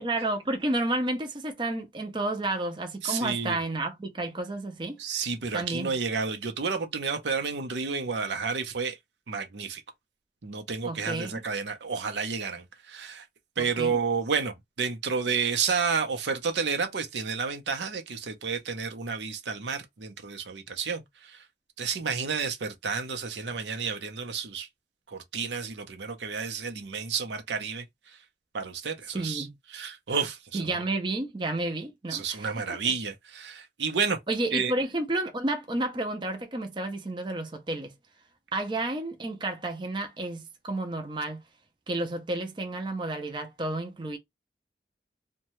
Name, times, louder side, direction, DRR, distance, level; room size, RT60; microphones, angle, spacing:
voice 1, 0.0-5.0 5.5-5.9 10.9-11.4 13.6-14.0 29.1-29.6 30.5-32.5 34.3-37.9 38.5-41.4 41.9-44.2, right 2 dB, 25° right, 0.5 m, -31 dB
voice 2, 3.0-3.6 5.0-9.0 9.3-9.8 10.4-13.2 13.6-21.4 21.8-24.7 25.1-28.2 28.5-30.7 32.1-34.2 34.5-34.7, right 5 dB, 85° right, 0.6 m, -31 dB
2.7 x 2.2 x 3.0 m
head